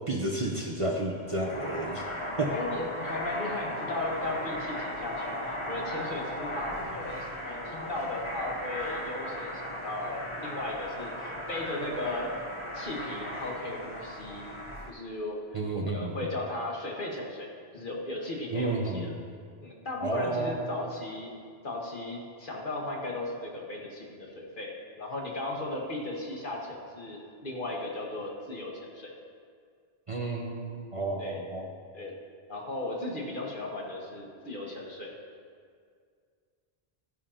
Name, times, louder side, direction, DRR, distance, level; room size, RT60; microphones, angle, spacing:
voice 1, 0.1-2.1 2.4-2.5 15.5-16.3 18.5-19.2 20.0-20.9 30.1-31.7, right 2 dB, 35° right, 0 dB, 0.7 m, -31 dB
sound 1, 1.3-14.9, equal, 30° left, 0.9 m, -37 dB
voice 2, 2.5-12.3 12.7-14.5 14.9-19.1 19.6-21.3 21.6-29.1 31.2-31.4 31.9-32.2 32.5-35.1, left 2 dB, 55° left, -1 dB, 1.6 m, -36 dB
13.0 x 10.5 x 2.8 m, 2.1 s
omnidirectional pair, 1.1 m